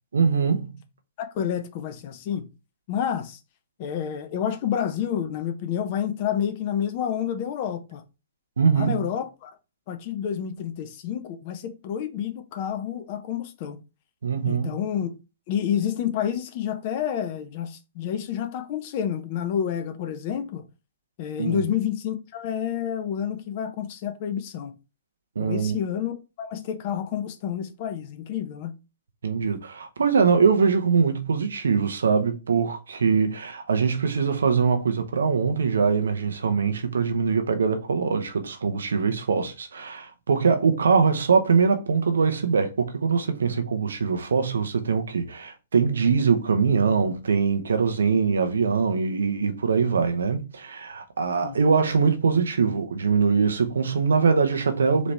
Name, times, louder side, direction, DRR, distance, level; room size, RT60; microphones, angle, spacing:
voice 1, 0.1-0.8 8.6-9.1 14.2-14.8 21.4-21.7 25.4-25.8 29.2-55.1, right 5 dB, 70° right, 0.7 m, -22 dB
voice 2, 1.2-2.5 2.9-3.4 3.8-8.0 8.7-9.5 9.9-13.8 14.4-15.1 15.5-20.6 21.2-24.7 25.4-28.7 51.4-51.6, left 9 dB, 45° left, 0.7 m, -29 dB
4.1 x 3.0 x 3.3 m
figure-of-eight pair, 115°, 0 cm